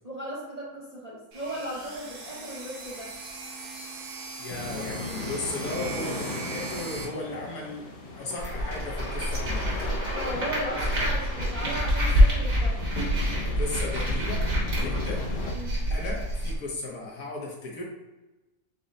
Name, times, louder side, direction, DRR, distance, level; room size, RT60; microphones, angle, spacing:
voice 1, 0.0-3.1 8.7-8.8 10.1-12.8 14.7-15.0 15.5-15.8, right 1 dB, 30° right, -7 dB, 0.8 m, -36 dB
sound 1, 1.3-7.0, right 4 dB, 80° right, 1.5 m, -40 dB
voice 2, 4.4-9.7 13.6-14.5 14.7-15.3 15.9-17.8, left 2 dB, 70° left, -2 dB, 1.5 m, -36 dB
sound 2, 4.5-15.6, left 2 dB, 55° left, 0.5 m, -37 dB
sound 3, 8.4-16.6, equal, 60° right, 1.7 m, -26 dB
5.3 x 2.2 x 3.7 m, 1.1 s
omnidirectional pair, 1.7 m